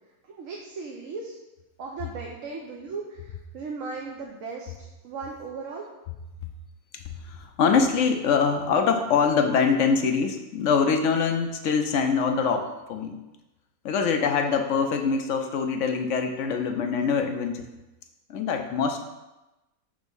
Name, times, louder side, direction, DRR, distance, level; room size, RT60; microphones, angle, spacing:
voice 1, 0.3-1.3 1.8-4.7 5.0-5.8, right 4 dB, 70° right, 0 dB, 1.1 m, -37 dB
voice 2, 6.9-13.2 13.8-17.7 18.3-19.0, left 5 dB, 70° left, 5 dB, 0.9 m, -24 dB
6.3 x 3.5 x 5.3 m, 1.0 s
omnidirectional pair, 1.5 m